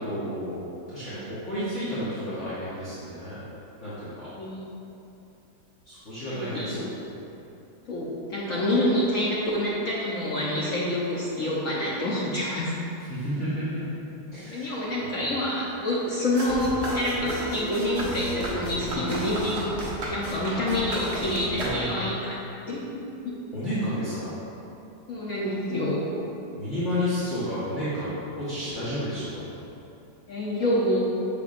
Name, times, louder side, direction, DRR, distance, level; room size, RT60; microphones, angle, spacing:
voice 1, 0.0-3.4 3.8-4.3 5.8-6.9 13.1-13.8 14.3-15.3 23.5-24.3 26.5-29.4, equal, 40° left, -13 dB, 1.5 m, -31 dB
voice 2, 6.3-6.8 7.9-12.7 14.5-19.7 20.1-22.4 22.7-22.8 23.2-23.4 25.1-26.0 30.3-31.0, left 1 dB, 60° left, -6 dB, 0.9 m, -27 dB
sound 1, 16.4-22.2, equal, 60° right, 1.6 m, -32 dB
7.0 x 6.8 x 2.5 m, 2.9 s
omnidirectional pair, 2.1 m